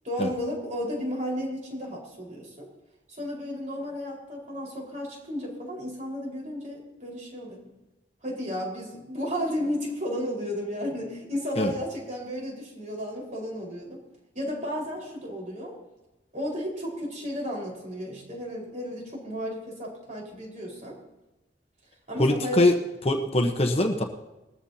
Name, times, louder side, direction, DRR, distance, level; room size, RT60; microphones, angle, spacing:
voice 1, 0.0-2.7 3.2-7.6 8.2-14.0 14.3-15.8 16.3-21.0 22.1-22.7, equal, 40° right, -1 dB, 4.7 m, -33 dB
voice 2, 22.2-22.7 23.0-24.0, left 1 dB, 35° left, 4 dB, 1.0 m, -22 dB
20.5 x 14.0 x 2.8 m, 1.0 s
head